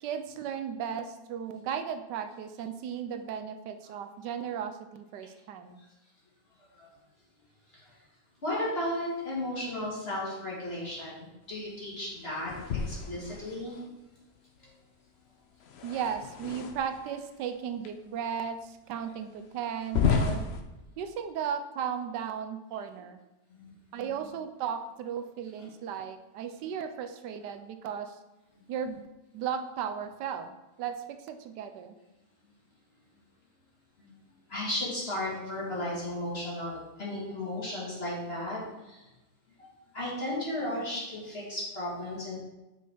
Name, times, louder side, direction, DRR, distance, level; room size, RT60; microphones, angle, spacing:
voice 1, 0.0-5.8 15.8-20.5 21.0-23.2 23.9-28.2 28.7-29.1 29.3-30.5 30.8-32.0, right 8 dB, 80° right, 8 dB, 1.3 m, -35 dB
voice 2, 8.4-12.5 12.9-13.7 23.5-23.6 24.0-24.1 34.5-38.6 39.9-42.4, left 1 dB, 35° left, -6 dB, 2.3 m, -34 dB
sound 1, 12.5-13.8 15.6-17.1 17.8-17.9 18.6-18.7 19.8-20.6, left 6 dB, 60° left, 0.6 m, -31 dB
6.1 x 5.4 x 4.6 m, 1.0 s
omnidirectional pair, 1.8 m